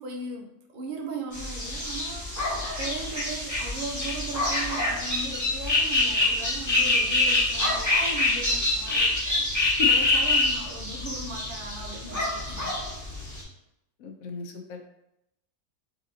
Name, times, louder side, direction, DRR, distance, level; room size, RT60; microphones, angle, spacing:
voice 1, 0.0-12.6, right 3 dB, 55° right, 2 dB, 0.6 m, -38 dB
sound 1, 1.3-13.4, left 2 dB, 15° left, 1.0 m, -26 dB
voice 2, 14.0-14.9, left 6 dB, 75° left, 4 dB, 1.0 m, -35 dB
4.1 x 3.7 x 2.7 m, 0.84 s
omnidirectional pair, 1.6 m